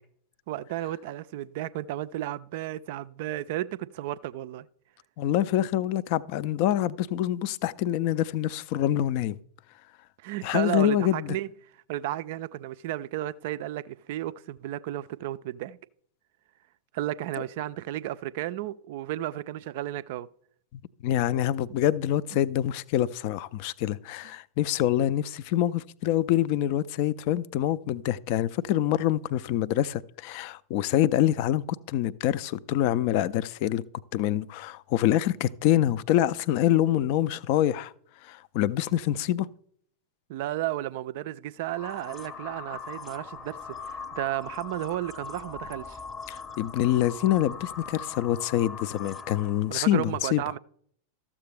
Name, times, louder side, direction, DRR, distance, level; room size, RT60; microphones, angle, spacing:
voice 1, 0.5-4.7 10.2-11.5 11.9-15.8 16.9-20.3 21.7-21.8 40.3-46.0 49.7-50.6, right 14 dB, 50° right, 0.3 m, -33 dB
voice 2, 5.2-9.4 10.4-11.4 21.0-33.8 34.1-37.9 38.2-39.5 46.3-50.4, left 12 dB, 45° left, 0.3 m, -26 dB
sound 1, 41.7-49.7, left 5 dB, 20° left, 0.7 m, -41 dB
13.0 x 7.2 x 3.3 m
figure-of-eight pair, 90°, 0 cm